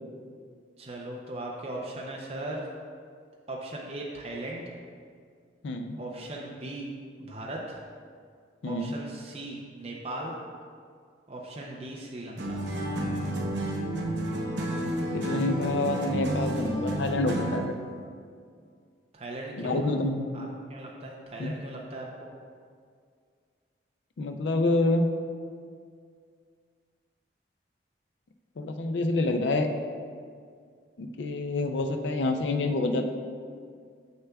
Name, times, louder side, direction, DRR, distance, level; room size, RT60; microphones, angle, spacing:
voice 1, 0.8-2.6 3.5-4.6 6.0-6.9 7.2-7.8 8.6-10.3 11.3-12.6 19.1-19.8 20.3-22.3, right 1 dB, 35° right, -2 dB, 0.5 m, -38 dB
voice 2, 5.6-6.0 8.6-8.9 15.1-17.7 19.6-20.3 21.4-21.5 24.2-25.1 28.6-29.7 31.0-33.1, left 2 dB, 75° left, 6 dB, 0.4 m, -27 dB
sound 1, 12.4-17.7, right 1 dB, 80° right, 0.7 m, -30 dB
6.9 x 6.6 x 2.3 m, 2.1 s
head